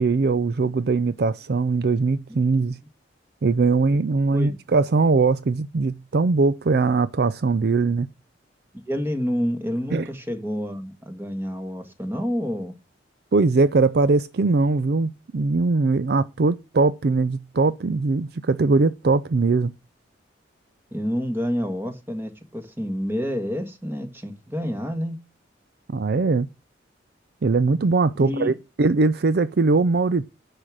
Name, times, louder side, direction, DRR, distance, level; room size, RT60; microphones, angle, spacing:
voice 1, 0.0-2.8 3.4-8.1 9.9-10.1 13.3-19.7 25.9-26.5 27.4-30.3, right 3 dB, 55° right, 0.5 m, -21 dB
voice 2, 8.9-12.7 20.9-25.2 28.2-28.5, equal, 10° right, 1.6 m, -28 dB
10.5 x 5.0 x 7.4 m
head